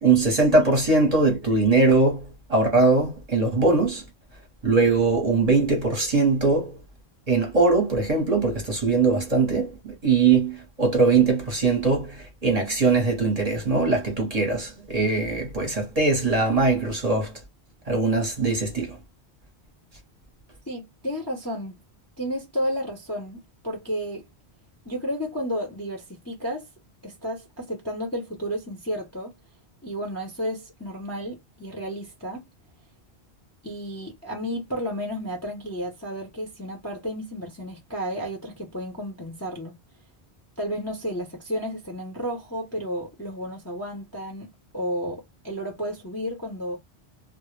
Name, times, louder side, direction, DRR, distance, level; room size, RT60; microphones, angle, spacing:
voice 1, 0.0-4.0 4.6-6.8 7.3-17.3 17.9-19.0, right 3 dB, 40° right, 0.8 m, -21 dB
voice 2, 20.7-21.8 22.2-24.2 24.8-26.7 27.0-29.3 29.8-32.4 33.6-39.8 40.6-44.5 44.7-46.8, equal, 20° left, 0.6 m, -32 dB
2.1 x 2.0 x 3.0 m
omnidirectional pair, 1.1 m